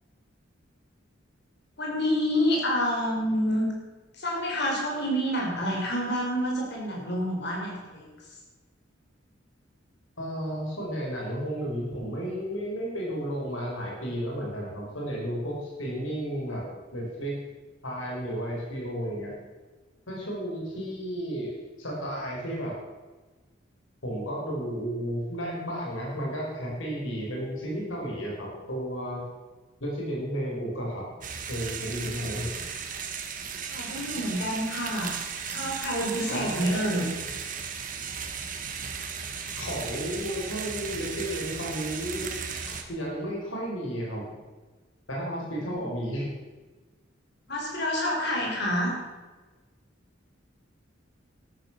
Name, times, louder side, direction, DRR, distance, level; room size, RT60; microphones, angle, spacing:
voice 1, 1.8-3.7 4.2-8.1 33.7-35.1 35.5-37.1 45.7-45.9 47.5-48.9, equal, 60° left, -2 dB, 5.5 m, -28 dB
voice 2, 10.2-16.6 16.9-17.4 17.8-19.4 20.1-22.7 24.0-29.3 29.8-31.1 31.5-32.5 36.3-37.0 39.6-42.3 42.7-44.3 45.1-46.3, equal, 85° left, -3 dB, 5.4 m, -33 dB
sound 1, 31.2-42.8, right 6 dB, 45° right, 1.7 m, -36 dB
13.5 x 13.5 x 6.3 m, 1.3 s
head